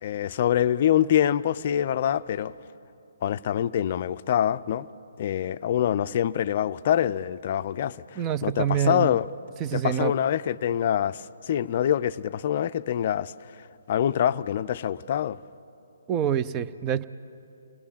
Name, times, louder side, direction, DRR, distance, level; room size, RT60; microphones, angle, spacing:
voice 1, 0.0-2.5 3.2-4.9 5.2-9.3 9.7-13.3 13.9-15.4, left 10 dB, 45° left, 0.5 m, -25 dB
voice 2, 8.2-9.2 9.6-10.1 16.1-17.0, right 9 dB, 25° right, 0.6 m, -26 dB
29.0 x 20.5 x 7.2 m
figure-of-eight pair, 135°, 0 cm